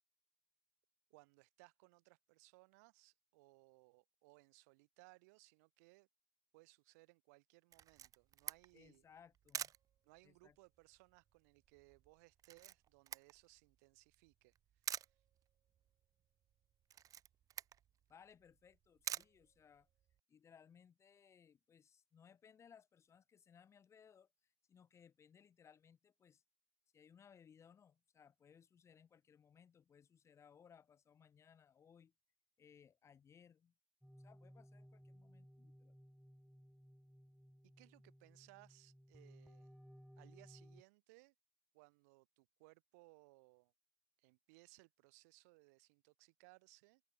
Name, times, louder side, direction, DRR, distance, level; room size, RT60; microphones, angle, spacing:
voice 1, 1.1-6.1 6.5-9.0 10.0-15.2 37.6-39.7 40.2-41.3 41.7-43.7 44.2-47.0, right 26 dB, 80° right, 3.2 m, -66 dB
Camera, 7.7-20.2, right 10 dB, 40° right, 1.0 m, -50 dB
voice 2, 8.7-9.7 10.2-10.6 18.1-19.9 20.3-26.4 26.9-32.1 32.6-33.7 34.2-36.0, left 7 dB, 35° left, 3.7 m, -65 dB
sound 1, 34.0-40.8, equal, ahead, 5.0 m, -61 dB
open air
supercardioid pair, 100°, 8 cm